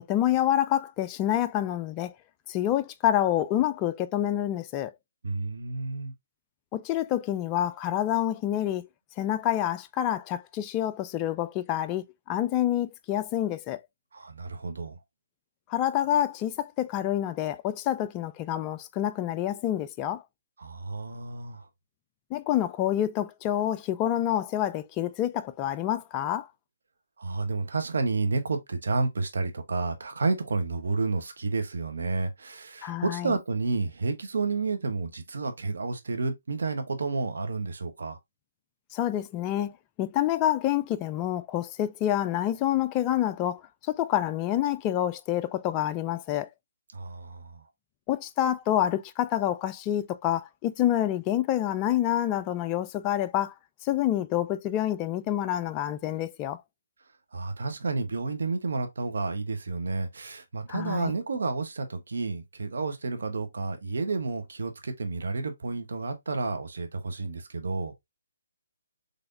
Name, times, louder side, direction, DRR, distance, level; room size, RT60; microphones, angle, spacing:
voice 1, 0.0-2.1 2.5-4.9 6.7-8.9 9.2-13.8 15.7-20.2 22.3-26.5 32.8-33.3 38.9-39.7 40.0-43.6 43.9-46.5 48.1-53.5 53.8-56.6 60.7-61.1, left 12 dB, 25° left, 0.3 m, -27 dB
voice 2, 5.2-6.1 14.1-15.0 20.6-21.6 27.2-38.2 46.9-47.6 57.3-67.9, right 3 dB, 70° right, 1.0 m, -30 dB
3.9 x 3.3 x 2.7 m
figure-of-eight pair, 145°, 0 cm